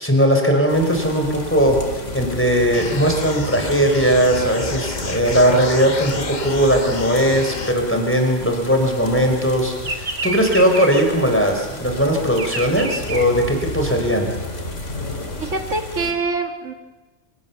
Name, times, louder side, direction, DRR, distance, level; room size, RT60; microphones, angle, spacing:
voice 1, 0.0-1.8 2.1-14.3, equal, 10° left, 3 dB, 4.4 m, -18 dB
sound 1, 0.7-16.1, left 2 dB, 85° left, 3.3 m, -34 dB
sound 2, 2.7-7.7, left 3 dB, 40° left, 1.5 m, -30 dB
Bird vocalization bird call bird song, 6.2-9.1 9.4-14.1, right 2 dB, 40° right, 2.4 m, -30 dB
voice 2, 15.4-16.7, right 3 dB, 80° right, 4 dB, 2.3 m, -24 dB
27.0 x 27.0 x 7.1 m, 1.2 s
omnidirectional pair, 1.2 m